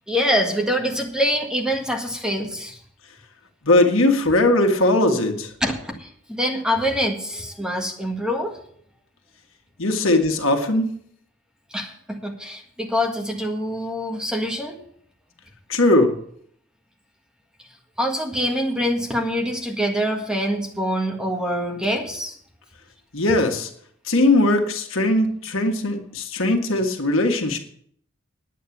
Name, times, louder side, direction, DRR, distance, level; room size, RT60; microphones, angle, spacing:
voice 1, 0.0-2.8 5.6-8.6 11.7-14.8 18.0-22.3, equal, 5° right, 1 dB, 1.7 m, -25 dB
voice 2, 3.6-5.5 9.8-10.9 15.7-16.1 23.1-23.7 24.1-27.6, left 2 dB, 70° left, 3 dB, 1.7 m, -19 dB
9.5 x 9.2 x 7.2 m, 0.64 s
head